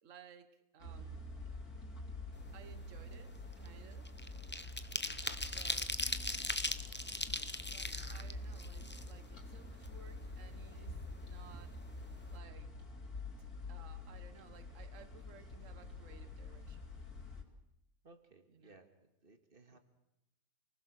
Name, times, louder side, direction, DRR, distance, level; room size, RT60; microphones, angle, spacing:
voice 1, 0.0-1.3 2.5-4.1 5.4-5.9 7.7-11.8 12.3-12.7 13.7-16.9 18.5-18.9 19.7-19.8, right 6 dB, 50° right, 11 dB, 1.6 m, -59 dB
sound 1, 0.8-17.4, left 2 dB, 65° left, 3.6 m, -47 dB
sound 2, 2.5-2.7 3.0-9.5 9.8-9.9 10.2-11.2 11.5-11.7 12.0-12.3, left 2 dB, 15° left, 0.3 m, -40 dB
voice 2, 18.0-19.8, right 3 dB, 35° right, 6 dB, 2.2 m, -61 dB
28.0 x 19.5 x 6.5 m, 0.87 s
omnidirectional pair, 1.7 m